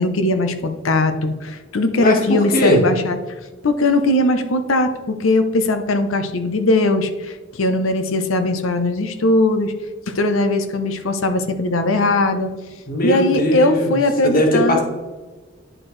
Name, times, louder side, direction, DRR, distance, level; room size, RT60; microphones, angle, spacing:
voice 1, 0.0-3.2 3.6-9.7 10.1-12.5 13.0-14.8, left 2 dB, 85° left, 8 dB, 0.7 m, -19 dB
voice 2, 2.0-2.8 12.9-14.0 14.2-14.8, equal, 45° left, 0 dB, 1.6 m, -19 dB
10.0 x 4.4 x 3.2 m, 1.3 s
head